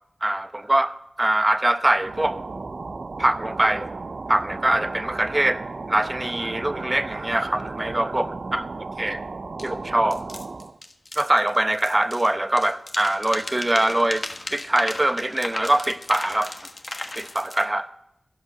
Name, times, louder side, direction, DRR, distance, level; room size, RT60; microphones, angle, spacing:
voice 1, 0.2-2.4 3.2-3.9 4.3-5.6 5.9-8.6 9.0-9.2 9.6-10.2 11.2-14.2 14.5-16.5 17.2-17.9, right 1 dB, 20° right, 0.8 m, -23 dB
sound 1, 1.9-10.8, right 3 dB, 60° right, 0.5 m, -35 dB
sound 2, 9.6-9.7 10.1-12.3 12.6-17.7, left 2 dB, 40° left, 1.3 m, -36 dB
16.0 x 5.5 x 6.8 m
wide cardioid pair, 80°, 0 cm